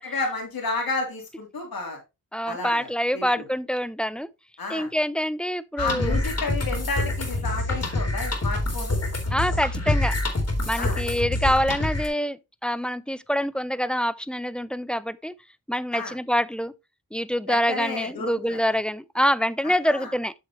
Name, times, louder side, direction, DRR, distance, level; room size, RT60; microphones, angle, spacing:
voice 1, 0.0-2.0 2.4-3.4 4.6-4.9 5.8-9.0 10.8-11.0 15.9-16.1 17.5-18.6 19.6-20.1, left 3 dB, 85° left, 3.3 m, -31 dB
voice 2, 2.3-4.3 4.7-6.2 9.3-10.1 10.7-15.3 15.7-16.7 17.1-20.3, equal, 5° left, 0.5 m, -26 dB
sound 1, 5.8-12.1, left 2 dB, 45° left, 3.0 m, -26 dB
8.2 x 6.5 x 2.9 m
wide cardioid pair, 70°, 35 cm